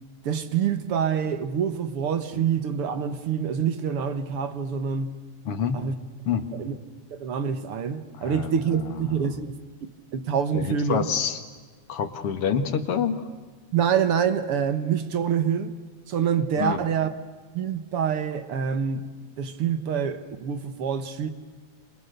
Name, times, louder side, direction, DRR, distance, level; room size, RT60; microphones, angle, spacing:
voice 1, 0.2-5.1 5.7-5.9 6.6-6.8 7.1-9.6 10.1-11.1 13.7-15.7 16.1-17.1 17.5-19.1 19.4-21.3, right 7 dB, 55° right, 2.0 m, -26 dB
voice 2, 5.4-5.8 6.3-6.5 8.2-9.3 10.5-11.4 11.9-13.2 16.6-16.8, left 7 dB, 55° left, 2.5 m, -28 dB
29.0 x 27.5 x 6.8 m
omnidirectional pair, 3.3 m